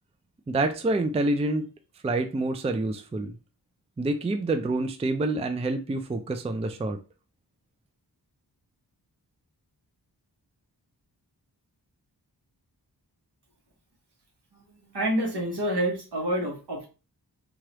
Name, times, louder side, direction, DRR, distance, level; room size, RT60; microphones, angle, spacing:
voice 1, 0.5-1.7 2.0-3.3 4.0-7.0, right 2 dB, 15° right, 7 dB, 0.3 m, -27 dB
voice 2, 14.5-16.9, right 1 dB, 75° right, 1 dB, 1.1 m, -28 dB
3.2 x 2.4 x 3.0 m, 0.32 s
wide cardioid pair, 70°, 41 cm